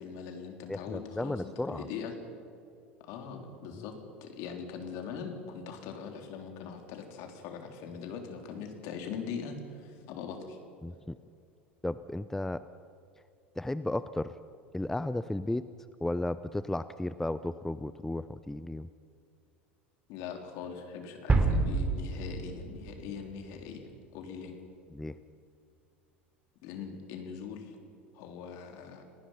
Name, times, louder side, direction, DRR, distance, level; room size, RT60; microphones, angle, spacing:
voice 1, 0.0-2.1 3.0-3.9 4.2-10.6 20.1-24.5 26.6-27.8 28.1-29.0, left 6 dB, 55° left, 4 dB, 3.8 m, -41 dB
voice 2, 0.7-1.9 10.8-11.1 11.8-12.7 13.6-14.3 14.7-15.7 16.0-18.9 24.9-25.2, left 1 dB, 5° left, 14 dB, 0.6 m, -34 dB
sound 1, 21.3-23.8, right 3 dB, 20° right, 3.0 m, -29 dB
30.0 x 19.0 x 5.8 m, 2.4 s
hypercardioid pair, 80°, 6 cm